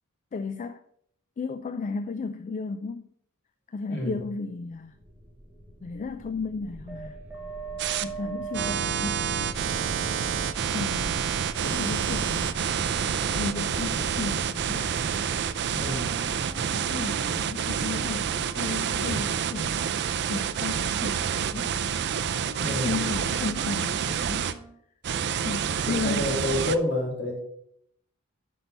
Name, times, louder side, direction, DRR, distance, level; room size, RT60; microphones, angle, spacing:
voice 1, 0.3-0.8 1.4-3.1 3.7-4.9 5.8-7.2 8.0-9.5 10.7-12.7 13.3-14.8 16.6-19.9 20.3-21.7 22.6-24.6 25.4-26.4, left 4 dB, 35° left, 0.3 m, -34 dB
voice 2, 3.9-4.2 15.7-16.1 22.6-22.9 25.8-27.4, left 1 dB, 60° left, 2.9 m, -29 dB
sound 1, 4.8-18.5, right 2 dB, 10° right, 1.3 m, -41 dB
sound 2, 7.8-8.0 8.5-24.5 25.0-26.8, right 8 dB, 55° right, 0.4 m, -28 dB
Wind instrument woodwind instrument, 15.8-24.8, right 3 dB, 35° right, 1.2 m, -46 dB
6.0 x 5.4 x 5.2 m
head